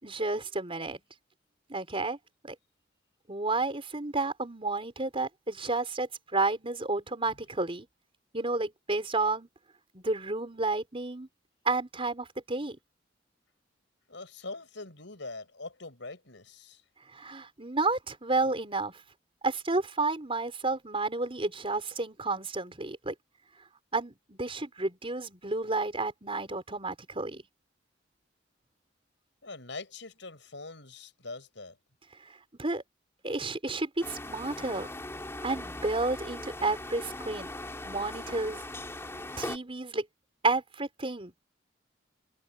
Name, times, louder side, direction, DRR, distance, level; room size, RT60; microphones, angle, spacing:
voice 1, 0.0-1.0 1.7-2.2 2.4-2.5 3.3-7.9 8.3-9.5 9.9-11.3 11.6-12.8 17.1-19.0 19.4-23.1 23.9-27.4 32.2-32.8 33.2-34.9 35.4-37.5 37.8-38.7 39.4-40.1 40.4-41.3, right 3 dB, 30° right, 4.7 m, -31 dB
voice 2, 14.1-16.8 29.4-31.8, left 3 dB, 75° left, 6.4 m, -43 dB
sound 1, 34.0-39.6, left 1 dB, 15° left, 3.1 m, -40 dB
head